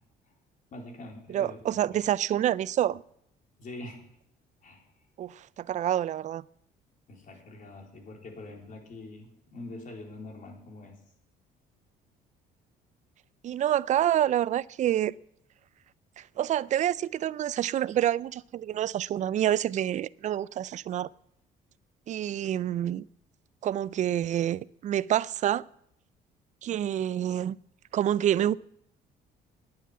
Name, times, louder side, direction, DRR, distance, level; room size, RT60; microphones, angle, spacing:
voice 1, 0.7-2.0 3.6-4.0 4.6-4.9 7.1-11.0, left 2 dB, 50° left, 4.1 m, -44 dB
voice 2, 1.3-3.0 5.2-6.4 13.4-15.1 16.2-21.1 22.1-23.0 23.6-25.6 26.6-27.6 27.9-28.6, right 11 dB, 45° right, 0.4 m, -27 dB
9.7 x 9.2 x 9.4 m
cardioid pair, 110°, 17 cm